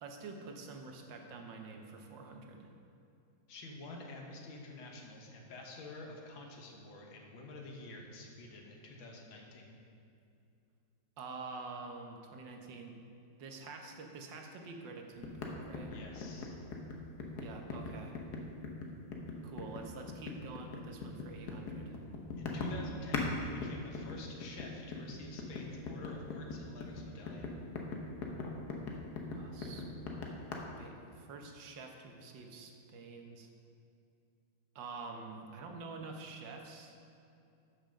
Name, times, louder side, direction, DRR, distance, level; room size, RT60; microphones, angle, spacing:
voice 1, 0.0-2.7 11.2-13.0 13.4-15.9 17.4-18.2 19.4-22.0 29.3-29.9 30.8-33.5 34.8-37.0, right 4 dB, 70° right, 3 dB, 1.7 m, -47 dB
voice 2, 3.5-9.8 15.9-16.6 22.4-27.5, left 2 dB, 90° left, 1 dB, 1.9 m, -49 dB
sound 1, 15.2-23.3 23.6-30.6, left 4 dB, 60° left, 1.5 m, -40 dB
13.0 x 6.2 x 5.2 m, 2.6 s
omnidirectional pair, 2.1 m